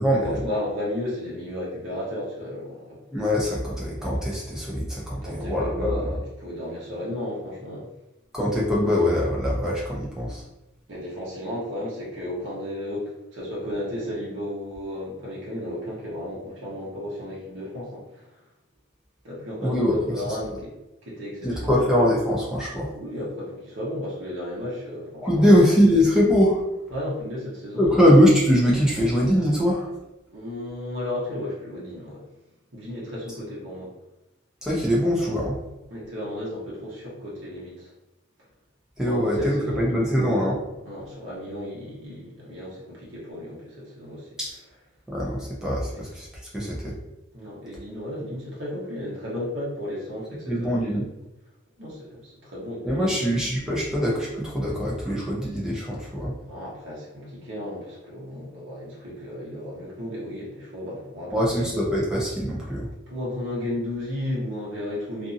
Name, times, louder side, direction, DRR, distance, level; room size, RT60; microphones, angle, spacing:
voice 1, 0.0-3.0 5.2-7.9 10.9-18.3 19.2-20.8 21.0-21.8 22.9-25.6 26.9-28.1 30.3-32.2 32.7-33.9 35.9-37.9 39.0-40.1 40.8-44.3 47.3-51.0 51.8-53.4 56.2-61.8 63.1-65.3, left 1 dB, 60° right, -6 dB, 0.9 m, -34 dB
voice 2, 3.1-6.0 8.3-10.4 19.6-20.0 21.4-22.9 25.2-26.6 27.8-29.9 34.6-35.6 39.0-40.6 44.4-44.5 45.1-46.3 46.5-46.9 50.5-51.1 52.8-56.3 61.3-62.9, equal, 5° right, -5 dB, 0.6 m, -22 dB
2.6 x 2.6 x 2.5 m, 0.94 s
head